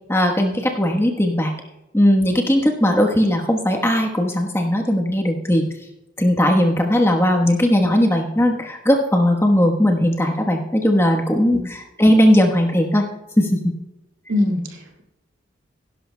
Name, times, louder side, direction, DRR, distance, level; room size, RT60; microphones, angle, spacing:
voice 1, 0.1-1.5 1.9-5.7 6.2-13.0 13.4-13.7, equal, 10° left, 2 dB, 1.1 m, -18 dB
voice 2, 14.3-15.0, left 1 dB, 80° right, 2 dB, 2.3 m, -23 dB
17.0 x 11.0 x 2.2 m, 0.96 s
head